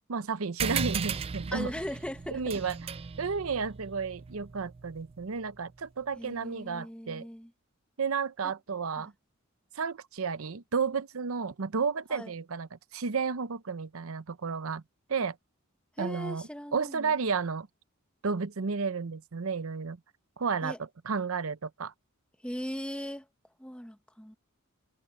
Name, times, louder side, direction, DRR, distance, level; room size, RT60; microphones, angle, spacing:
voice 1, 0.1-1.7 2.3-2.7 3.2-7.3 8.0-9.1 9.7-14.8 15.1-15.4 16.0-16.4 16.7-17.7 18.2-20.0 20.4-20.7 21.0-21.9, right 5 dB, 80° right, 0.7 m, -32 dB
sound 1, 0.6-5.5, right 6 dB, 25° right, 0.3 m, -36 dB
voice 2, 1.5-2.6 6.1-7.5 9.0-9.1 12.1-12.3 16.0-17.1 20.6-20.8 22.4-23.3 23.6-24.4, equal, 5° left, 1.3 m, -39 dB
head